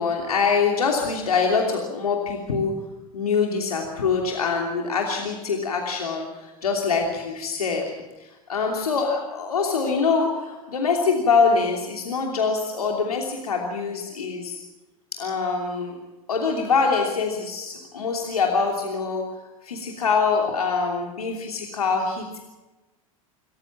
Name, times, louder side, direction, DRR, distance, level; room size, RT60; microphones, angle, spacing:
voice 1, 0.0-2.7 3.1-6.3 6.6-7.9 8.5-14.6 15.1-15.9 16.3-19.2 19.6-22.4, left 5 dB, 80° left, 1 dB, 3.0 m, -24 dB
27.5 x 14.5 x 7.4 m, 1.1 s
figure-of-eight pair, 85°, 19 cm